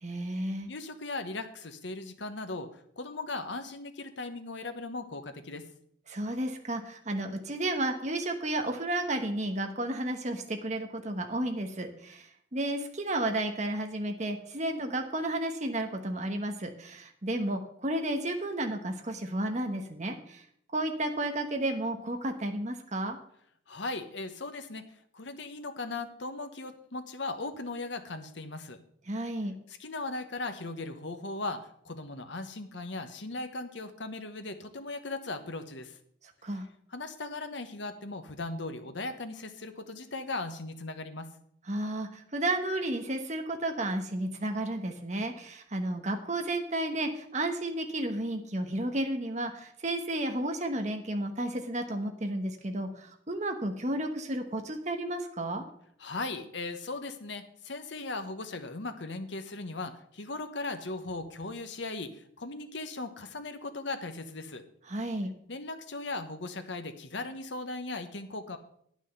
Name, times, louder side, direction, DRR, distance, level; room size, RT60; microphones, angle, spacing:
voice 1, 0.0-0.7 6.1-20.4 20.7-23.2 29.1-29.6 36.4-36.7 41.7-55.6 64.9-65.3, right 1 dB, 35° right, 5 dB, 1.1 m, -32 dB
voice 2, 0.7-5.7 23.7-24.8 25.1-28.8 29.8-36.0 36.9-41.3 56.0-64.6 65.5-68.6, left 2 dB, 70° left, 8 dB, 1.2 m, -38 dB
9.4 x 6.3 x 7.9 m, 0.67 s
head